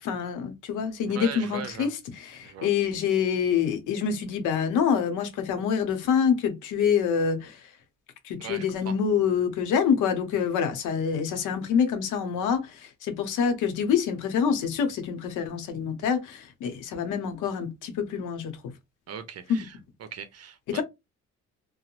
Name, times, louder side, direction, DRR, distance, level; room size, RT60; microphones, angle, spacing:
voice 1, 0.0-7.6 8.2-18.6 19.5-19.7 20.7-20.8, left 7 dB, 90° left, 0.8 m, -26 dB
voice 2, 1.1-1.9 2.4-2.7 8.4-8.9 19.1-20.8, right 7 dB, 55° right, 0.7 m, -39 dB
3.0 x 2.1 x 2.4 m
cardioid pair, 90°, 30 cm